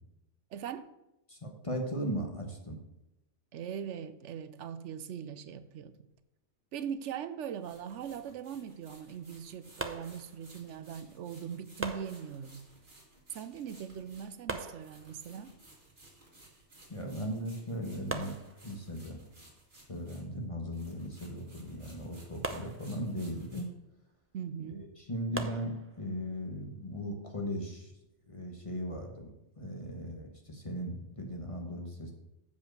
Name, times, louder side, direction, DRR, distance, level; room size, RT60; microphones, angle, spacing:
voice 1, 0.5-0.9 3.5-5.9 6.7-12.7 13.3-15.6 24.3-24.9, right 8 dB, 80° right, 12 dB, 0.9 m, -40 dB
voice 2, 1.3-2.8 16.9-18.4 18.6-19.2 19.9-23.7 24.7-27.9 28.3-29.3 29.6-32.1, equal, 30° left, 2 dB, 1.1 m, -38 dB
sound 1, 6.1-6.2 7.5-20.4 20.7-23.6, right 2 dB, 45° right, 2.4 m, -58 dB
sound 2, 9.8-10.8 11.8-12.8 14.5-15.5 17.1-17.2 17.5-17.6 18.1-19.2 22.4-23.4 25.3-26.2, right 2 dB, 20° right, 0.3 m, -41 dB
7.0 x 5.3 x 6.4 m, 0.91 s
omnidirectional pair, 1.2 m